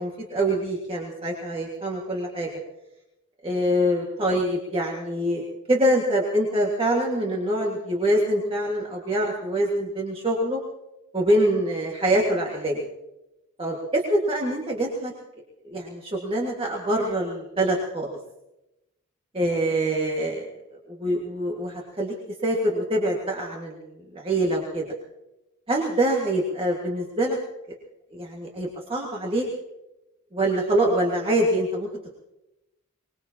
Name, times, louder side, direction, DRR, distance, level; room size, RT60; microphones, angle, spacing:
voice 1, 0.0-2.5 3.4-10.6 11.1-12.9 13.6-15.1 15.6-18.1 19.3-20.5 20.9-22.1 22.4-24.9 25.7-27.4 27.7-27.8 28.1-29.5 30.3-31.9, right 1 dB, 25° right, -2 dB, 1.8 m, -25 dB
24.5 x 20.5 x 2.9 m, 0.95 s
head